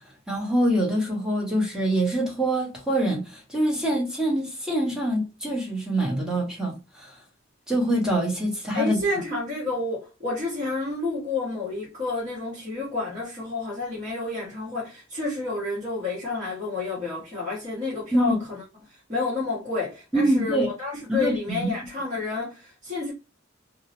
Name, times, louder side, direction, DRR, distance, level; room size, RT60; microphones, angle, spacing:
voice 1, 0.3-7.2 7.7-9.0 18.1-18.4 20.1-20.7 21.1-21.7, right 1 dB, 5° right, 0.8 m, -25 dB
voice 2, 8.7-18.6 18.9-23.1, left 3 dB, 35° right, 1.2 m, -30 dB
2.5 x 2.0 x 2.9 m
head